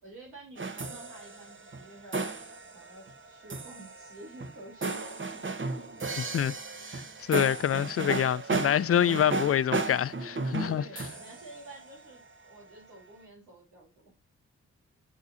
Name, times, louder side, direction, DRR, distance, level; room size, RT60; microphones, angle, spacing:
voice 1, 0.0-2.5 2.7-5.5 10.7-14.1, right 2 dB, 90° right, 3.8 m, -50 dB
sound 1, 0.6-12.4, right 3 dB, 40° right, 1.3 m, -35 dB
voice 2, 6.2-6.5 7.2-10.8, left 9 dB, 50° left, 0.5 m, -26 dB
6.8 x 6.2 x 2.7 m
supercardioid pair, 45°, 30 cm